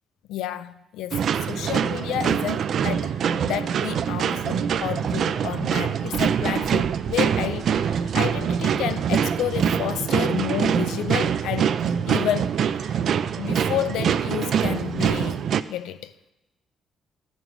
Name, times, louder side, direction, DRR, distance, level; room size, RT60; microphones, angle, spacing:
voice 1, 0.3-3.1 3.5-11.8 12.1-13.0 13.4-16.1, left 11 dB, 90° left, 0.4 m, -30 dB
sound 1, 1.1-15.6, right 8 dB, 65° right, 0.4 m, -24 dB
13.5 x 5.3 x 4.7 m
cardioid pair, 90°, 0 cm